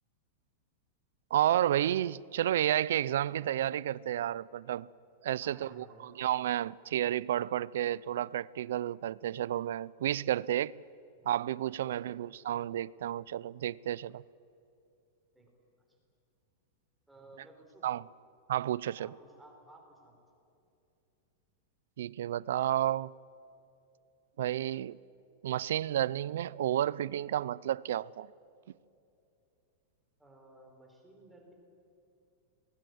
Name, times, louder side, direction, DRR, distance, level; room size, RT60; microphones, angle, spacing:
voice 1, 1.3-4.9 5.2-10.7 11.2-14.2 17.8-18.0 18.5-19.1 22.0-23.1 24.4-25.0 25.4-28.3, right 12 dB, 70° right, 0.5 m, -31 dB
voice 2, 5.4-6.1 11.2-11.3 11.8-12.3 15.3-15.5 17.1-17.9 19.0-20.1 30.2-31.5, right 2 dB, 5° right, 3.8 m, -56 dB
27.5 x 20.0 x 8.0 m
supercardioid pair, 175°, 0 cm